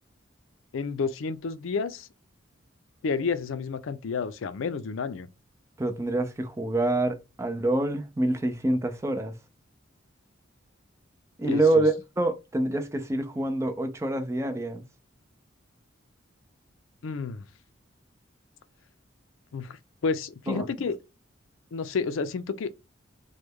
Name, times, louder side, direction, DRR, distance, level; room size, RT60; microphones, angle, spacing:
voice 1, 0.7-2.1 3.0-5.3 11.4-11.9 17.0-17.5 19.5-19.8 20.0-21.0 21.7-22.7, left 5 dB, 85° left, 0.4 m, -30 dB
voice 2, 5.8-9.4 11.4-14.8 20.5-20.7, right 2 dB, 15° right, 0.4 m, -26 dB
3.1 x 2.2 x 3.5 m
head